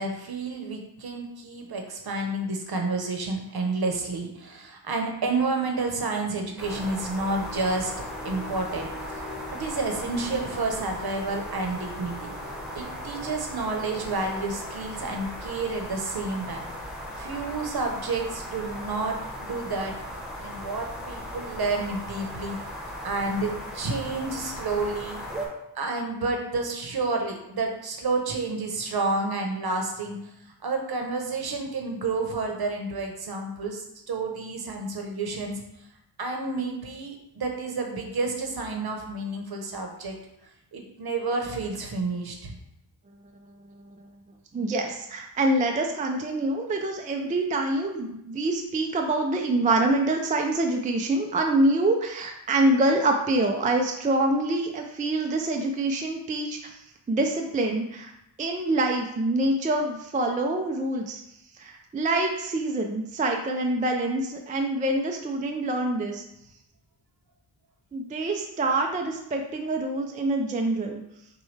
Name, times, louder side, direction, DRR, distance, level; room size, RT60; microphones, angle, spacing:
voice 1, 0.0-8.0 8.2-9.2 9.6-12.3 12.7-16.6 17.2-20.0 20.4-22.6 23.0-25.2 25.7-30.2 30.6-35.6 36.2-40.2 40.7-42.5, right 3 dB, 55° right, 3 dB, 0.9 m, -30 dB
sound 1, 6.6-25.5, equal, ahead, 1.0 m, -37 dB
voice 2, 43.4-44.1 44.5-56.8 57.1-58.1 58.4-61.2 61.6-66.2 67.9-71.0, right 2 dB, 20° right, 3 dB, 0.3 m, -26 dB
6.2 x 2.2 x 3.2 m, 0.83 s
wide cardioid pair, 120°, 44 cm